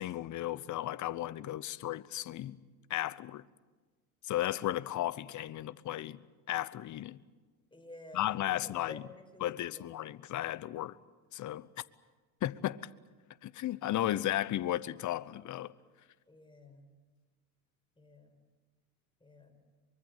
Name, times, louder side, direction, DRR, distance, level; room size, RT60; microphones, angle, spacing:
voice 1, 0.0-2.6 2.9-3.4 4.3-6.2 6.5-7.2 8.1-9.0 9.4-11.0 11.3-11.7 12.4-12.8 13.4-15.7, left 13 dB, 40° left, 1.0 m, -34 dB
voice 2, 7.7-9.8 16.3-16.9 18.0-18.4 19.2-19.6, left 2 dB, 10° left, 5.2 m, -52 dB
24.0 x 23.5 x 8.2 m
hypercardioid pair, 85°, 43 cm